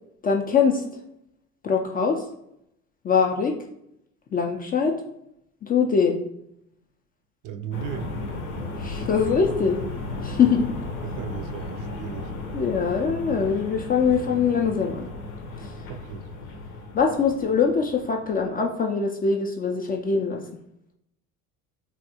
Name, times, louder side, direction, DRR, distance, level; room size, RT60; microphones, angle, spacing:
voice 1, 0.2-0.8 1.6-2.3 3.0-3.5 4.3-5.0 5.6-6.2 8.8-9.8 10.2-10.6 12.5-15.1 15.6-15.8 16.9-20.4, left 6 dB, 25° left, 1 dB, 0.3 m, -23 dB
voice 2, 7.4-8.1 11.0-12.3 15.9-16.5, right 8 dB, 50° right, 7 dB, 0.5 m, -36 dB
sound 1, 7.7-18.6, left 2 dB, 80° left, 0.7 m, -35 dB
3.5 x 2.3 x 2.8 m, 0.77 s
hypercardioid pair, 65°, 41 cm